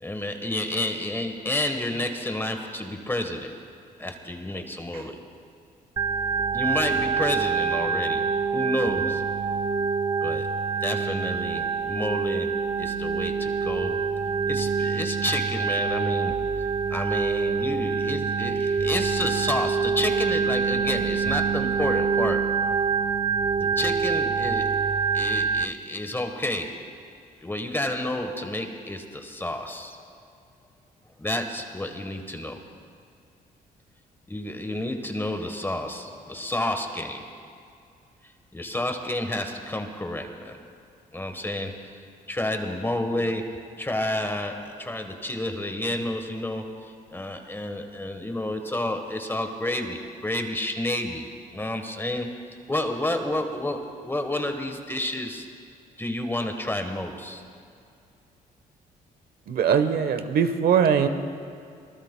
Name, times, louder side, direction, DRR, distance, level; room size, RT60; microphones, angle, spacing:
voice 1, 0.0-3.6 4.0-5.2 6.5-9.3 10.2-10.5 10.8-14.1 14.5-16.4 16.9-22.6 23.6-24.7 25.1-26.8 27.4-30.0 31.2-32.6 34.3-37.3 38.5-40.6 41.1-42.0 42.3-51.2 51.5-52.3 52.7-55.5 56.0-57.4, left 1 dB, 15° left, 5 dB, 1.2 m, -30 dB
Organ, 6.0-25.6, right 5 dB, 25° right, 0.5 m, -26 dB
voice 2, 59.5-61.1, right 7 dB, 70° right, 9 dB, 1.0 m, -21 dB
25.0 x 19.5 x 2.2 m, 2.4 s
cardioid pair, 90°, 16 cm